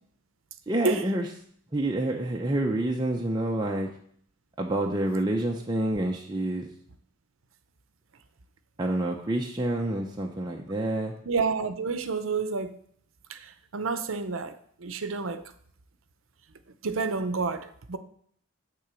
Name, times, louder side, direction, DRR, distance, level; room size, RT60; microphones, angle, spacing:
voice 1, 0.7-1.3 1.7-3.9 4.6-6.7 8.8-11.1, right 1 dB, 20° right, 0.6 m, -28 dB
voice 2, 11.3-12.8 13.3-15.4 16.8-18.0, right 4 dB, 70° right, 0.7 m, -29 dB
9.0 x 3.8 x 6.8 m
head